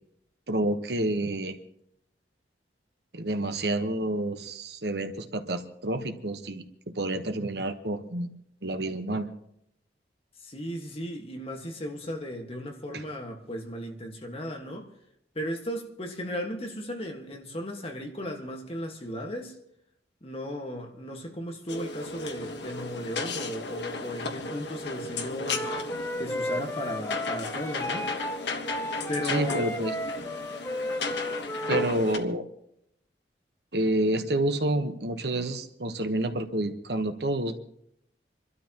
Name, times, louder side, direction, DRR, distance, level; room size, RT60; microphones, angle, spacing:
voice 1, 0.5-1.6 3.1-8.3 8.6-9.3 12.9-13.0 29.3-29.9 31.7-32.5 33.7-37.6, right 1 dB, 70° right, 1.1 m, -29 dB
voice 2, 10.4-14.9 15.4-19.6 20.2-25.7 26.2-28.1 29.1-29.6, equal, 35° left, 1.6 m, -36 dB
sound 1, 21.7-32.2, left 3 dB, 80° left, 1.4 m, -34 dB
Wind instrument woodwind instrument, 25.4-31.9, left 1 dB, 15° left, 0.6 m, -34 dB
27.5 x 12.5 x 3.0 m
head